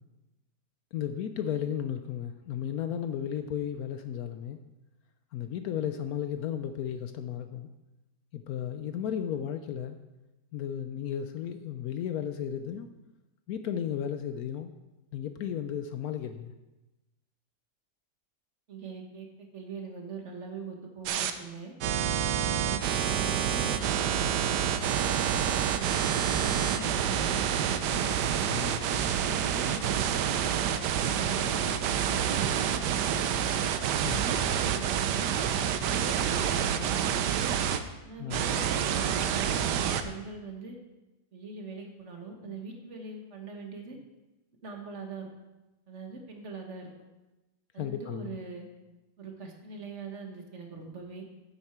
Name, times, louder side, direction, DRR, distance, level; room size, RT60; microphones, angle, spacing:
voice 1, 0.9-4.6 5.3-7.7 8.3-10.0 10.5-12.9 13.5-14.7 15.1-16.5 28.5-28.8 34.0-34.3 38.2-38.5 47.8-48.4, left 9 dB, 70° left, 8 dB, 1.0 m, -34 dB
voice 2, 18.7-21.7 22.4-25.0 25.7-28.1 29.2-30.0 30.6-31.6 31.9-33.6 34.2-37.4 38.0-40.8 41.3-44.0 44.6-45.3 45.9-46.9 47.7-48.7 49.2-51.2, right 4 dB, 45° right, 2 dB, 1.4 m, -42 dB
sound 1, 21.1-21.3 21.8-37.8 38.3-40.0, right 8 dB, 85° right, 1.3 m, -28 dB
9.7 x 7.9 x 4.4 m, 1.0 s
omnidirectional pair, 1.8 m